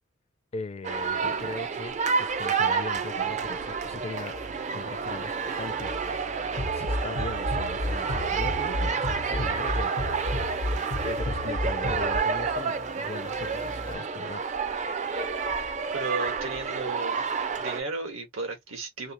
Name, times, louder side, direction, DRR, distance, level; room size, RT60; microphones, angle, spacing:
voice 1, 0.5-4.4 4.7-5.9 6.7-10.2 11.0-14.5, left 3 dB, 30° left, 0.4 m, -39 dB
sound 1, 0.8-17.8, right 5 dB, 35° right, 0.4 m, -29 dB
sound 2, 2.9-13.9, right 1 dB, 65° right, 1.0 m, -46 dB
Bass drum, 6.6-12.2, left 2 dB, 85° left, 0.9 m, -31 dB
voice 2, 15.9-17.3 17.5-19.1, right 3 dB, 90° right, 1.6 m, -34 dB
3.4 x 3.1 x 3.0 m
head